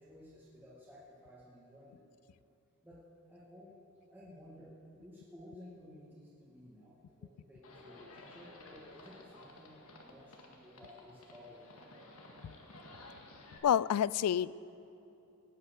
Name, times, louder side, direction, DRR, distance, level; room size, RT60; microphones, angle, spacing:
voice 1, 0.0-2.0 2.8-3.0 3.3-3.8 4.1-6.9 7.2-12.1, left 1 dB, 10° right, -6 dB, 1.9 m, -55 dB
Livestock farm animals working animals, 7.6-13.6, left 2 dB, 70° left, 1.9 m, -54 dB
voice 2, 13.6-14.7, left 9 dB, 85° left, 21 dB, 0.3 m, -29 dB
17.5 x 9.2 x 6.5 m, 2.8 s
head